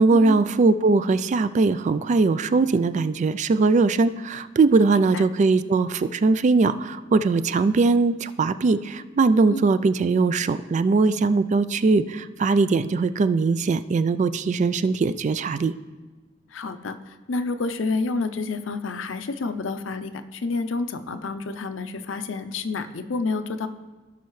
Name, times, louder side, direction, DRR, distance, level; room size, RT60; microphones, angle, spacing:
voice 1, 0.0-15.7, right 3 dB, 40° right, 13 dB, 0.3 m, -20 dB
voice 2, 4.9-5.2 9.5-9.6 16.5-23.7, left 3 dB, 90° left, 9 dB, 0.6 m, -29 dB
17.0 x 5.8 x 3.2 m, 1.2 s
head